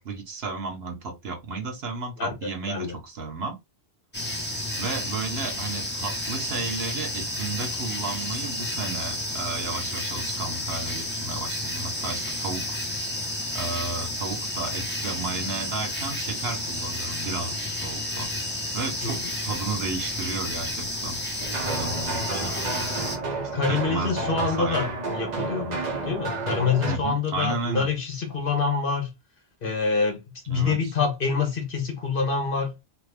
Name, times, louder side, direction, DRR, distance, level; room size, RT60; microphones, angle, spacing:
voice 1, 0.0-3.5 4.8-12.8 13.5-18.3 18.7-21.2 21.7-22.9 23.7-24.9 26.9-27.9 30.5-30.8, right 3 dB, 70° right, 1.2 m, -33 dB
sound 1, 4.1-23.2, left 1 dB, 10° left, 0.7 m, -31 dB
sound 2, 21.4-27.0, right 3 dB, 45° right, 0.7 m, -31 dB
voice 2, 23.5-25.8 26.0-29.1 29.6-32.7, left 5 dB, 55° left, 1.3 m, -26 dB
3.5 x 2.2 x 3.3 m
omnidirectional pair, 1.1 m